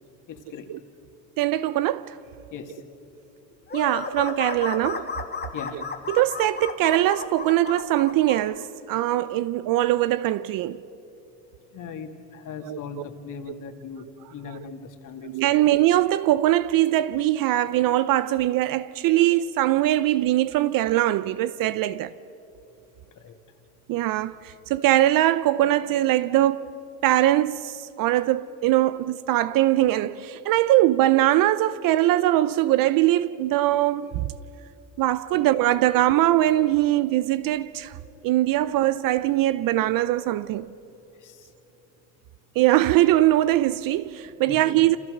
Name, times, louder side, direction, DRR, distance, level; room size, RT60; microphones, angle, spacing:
voice 1, 0.3-0.7 2.5-2.8 5.5-5.8 11.7-14.1 14.3-15.3 23.2-23.4 35.3-35.4 38.6-38.7 41.2-41.5 44.5-44.6, left 6 dB, 40° left, 2.6 m, -39 dB
voice 2, 1.4-2.2 3.7-5.1 5.7-10.8 12.6-13.0 14.5-14.6 15.2-22.1 23.9-26.7 27.0-34.3 35.0-38.0 38.2-40.7 42.6-45.0, right 14 dB, 45° right, 0.6 m, -22 dB
sound 1, 3.7-8.4, left 5 dB, 20° left, 2.5 m, -33 dB
28.5 x 27.0 x 6.6 m
supercardioid pair, 115°, 50 cm